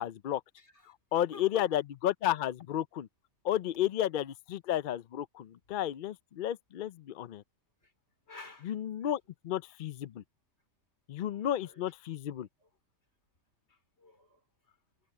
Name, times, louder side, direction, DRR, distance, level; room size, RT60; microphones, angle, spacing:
voice 1, 0.0-0.4 1.1-3.1 3.4-7.4 8.6-10.2 11.1-12.5, left 11 dB, 70° left, 0.4 m, -32 dB
voice 2, 0.6-0.9 1.3-1.7 7.8-7.9 8.3-8.7 9.0-9.1 11.3-11.9 12.3-12.7 13.7-14.4 14.7-14.8, left 3 dB, 50° left, 3.9 m, -52 dB
omnidirectional pair, 1.4 m